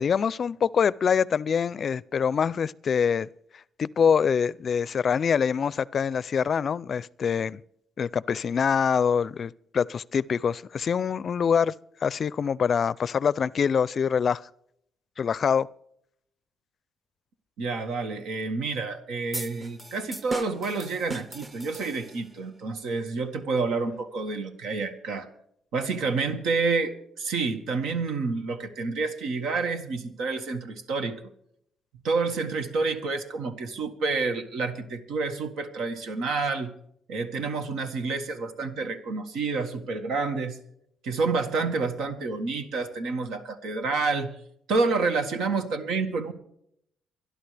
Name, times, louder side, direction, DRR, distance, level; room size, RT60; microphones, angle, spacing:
voice 1, 0.0-3.3 3.8-7.6 8.0-11.7 12.0-14.4 15.2-15.7, left 7 dB, 50° left, 0.4 m, -25 dB
voice 2, 17.6-25.3 25.7-31.2 32.0-36.7 37.1-40.6 41.0-44.3 44.7-46.3, right 4 dB, 85° right, 1.7 m, -29 dB
sound 1, 19.3-22.4, right 2 dB, 25° right, 1.0 m, -38 dB
24.5 x 11.0 x 3.4 m
cardioid pair, 90°, 0 cm